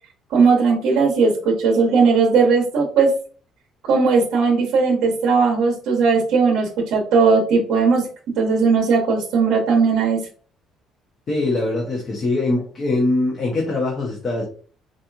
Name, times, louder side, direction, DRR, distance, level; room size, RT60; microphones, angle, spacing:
voice 1, 0.3-3.1 3.8-8.1 8.3-10.2, right 4 dB, 65° right, 0 dB, 0.9 m, -17 dB
voice 2, 11.3-14.4, left 2 dB, 30° left, -2 dB, 0.7 m, -22 dB
4.0 x 2.9 x 2.3 m, 0.41 s
cardioid pair, 175°, 0 cm